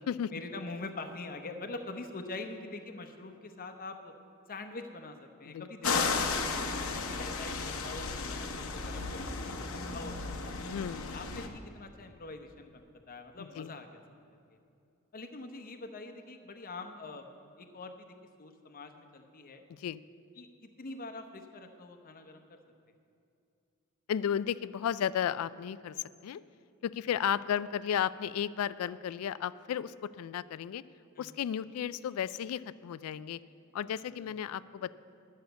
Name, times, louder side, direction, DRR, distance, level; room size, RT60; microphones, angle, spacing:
voice 1, 0.3-4.1 4.5-10.5 11.1-14.0 15.1-17.3 17.6-19.6 20.4-20.5 20.8-22.6 31.2-31.4 34.1-34.3, left 3 dB, 45° left, 6 dB, 0.9 m, -44 dB
sound 1, 5.8-11.5, left 4 dB, 75° left, 0.9 m, -34 dB
voice 2, 10.7-11.2 13.6-13.7 19.7-20.0 24.1-26.0 26.2-26.4 26.8-30.8 31.2-33.4 33.7-34.9, left 9 dB, 90° left, 18 dB, 0.3 m, -34 dB
11.5 x 6.5 x 8.0 m, 2.5 s
head